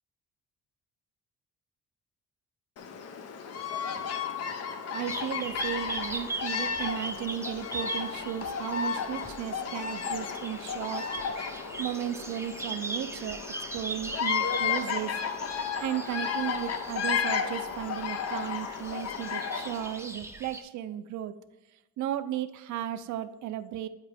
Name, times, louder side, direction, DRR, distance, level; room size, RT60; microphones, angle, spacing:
Bird vocalization bird call bird song, 2.8-20.0, left 6 dB, 55° left, 0.6 m, -33 dB
voice 1, 4.9-11.1 11.8-13.4 13.7-15.2 15.8-21.3 22.0-23.9, right 11 dB, 70° right, 12 dB, 0.5 m, -35 dB
sound 1, 5.1-20.6, right 2 dB, 10° right, 0.5 m, -40 dB
8.1 x 2.9 x 4.9 m, 1.0 s
cardioid pair, 90°, 30 cm